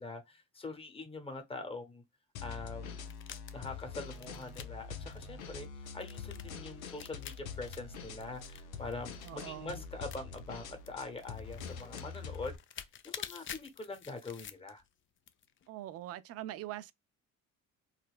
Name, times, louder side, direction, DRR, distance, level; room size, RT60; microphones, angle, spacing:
voice 1, 0.0-2.0 2.4-3.0 3.5-12.5 13.0-14.8, left 3 dB, 15° left, 0.9 m, -44 dB
sound 1, 2.3-12.6, left 5 dB, 85° left, 0.5 m, -45 dB
sound 2, 3.0-9.7 10.1-10.5 10.8-14.9 15.2-15.7, left 9 dB, 30° left, 0.4 m, -48 dB
voice 2, 9.2-9.8 15.7-16.9, right 14 dB, 40° right, 0.4 m, -43 dB
3.9 x 2.0 x 2.4 m
hypercardioid pair, 50°, 41 cm